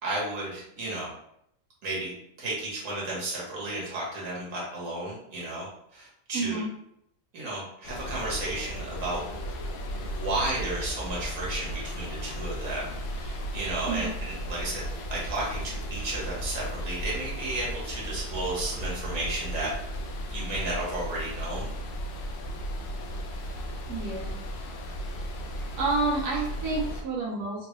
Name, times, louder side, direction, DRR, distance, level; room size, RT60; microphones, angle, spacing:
voice 1, 0.0-1.1 1.8-2.1 2.4-6.6 7.3-9.6 10.0-19.7 20.3-21.7, right 2 dB, 60° right, -5 dB, 1.6 m, -33 dB
voice 2, 6.3-6.7 13.9-14.1 23.9-24.4 25.8-27.7, right 3 dB, 90° right, -3 dB, 1.2 m, -29 dB
sound 1, 7.8-27.0, equal, 90° left, 0.5 m, -35 dB
3.6 x 2.3 x 3.0 m, 0.74 s
omnidirectional pair, 1.6 m